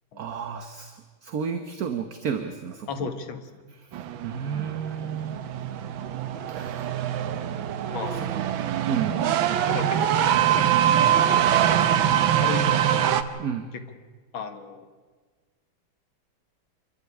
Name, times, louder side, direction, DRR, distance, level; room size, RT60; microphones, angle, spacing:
voice 1, 0.2-3.1 4.2-5.4 6.6-6.8 8.0-8.3 8.9-9.2 13.4-13.7, right 7 dB, 55° right, 8 dB, 1.4 m, -32 dB
voice 2, 2.9-3.5 7.9-8.3 9.1-9.2 9.7-10.1 10.5-10.9 12.3-12.8 13.7-13.8 14.3-14.9, left 5 dB, 85° left, 7 dB, 2.3 m, -34 dB
sound 1, 3.9-13.2, right 10 dB, 90° right, 1.7 m, -23 dB
26.5 x 12.0 x 10.0 m, 1.4 s
omnidirectional pair, 2.1 m